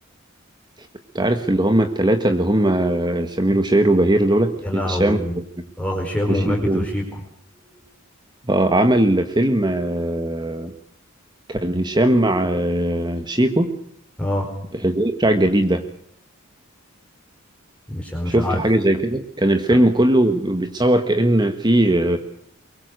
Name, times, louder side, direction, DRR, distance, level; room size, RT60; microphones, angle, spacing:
voice 1, 1.1-5.2 6.3-6.8 8.4-10.7 11.5-13.7 14.7-15.8 18.3-22.2, right 1 dB, 20° right, 7 dB, 1.5 m, -19 dB
voice 2, 4.6-5.3 5.8-7.2 14.2-14.5 17.9-18.6, left 1 dB, 5° left, 0 dB, 4.6 m, -24 dB
23.5 x 23.0 x 6.4 m, 0.69 s
head